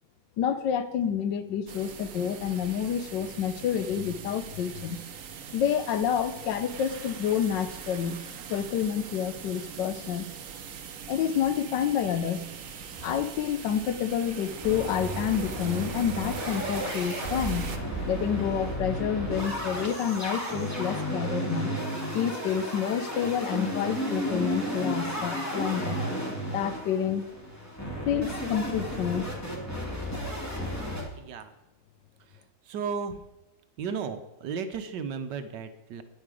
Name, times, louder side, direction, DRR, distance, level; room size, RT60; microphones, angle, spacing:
voice 1, 0.4-5.0 5.5-8.2 8.5-10.3 11.1-12.4 13.0-17.7 18.1-21.8 22.1-26.0 26.5-27.2 28.1-29.3, left 8 dB, 75° left, 11 dB, 1.4 m, -28 dB
sound 1, 1.7-17.8, right 7 dB, 55° right, 1.0 m, -42 dB
sound 2, 12.7-13.4 13.8-13.9 14.1-14.2 14.6-31.0, equal, 10° left, 2.2 m, -33 dB
voice 2, 31.1-31.5 32.3-33.2 33.8-36.0, right 6 dB, 70° right, 9 dB, 1.4 m, -35 dB
9.7 x 9.5 x 4.9 m, 0.97 s
omnidirectional pair, 2.0 m